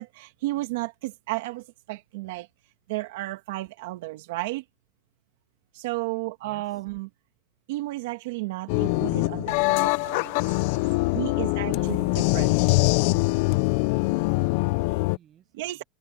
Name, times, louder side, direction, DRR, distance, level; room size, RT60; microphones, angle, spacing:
voice 1, 0.0-2.5 2.9-4.6 5.7-7.1 7.7-10.4 11.1-12.0 12.3-12.5 15.5-15.8, right 19 dB, 80° right, 1.7 m, -33 dB
voice 2, 6.4-6.8 11.7-12.5 13.3-15.8, right 10 dB, 35° right, 7.8 m, -51 dB
sound 1, 8.7-15.2, left 24 dB, 70° left, 0.6 m, -23 dB
supercardioid pair, 130°, 0 cm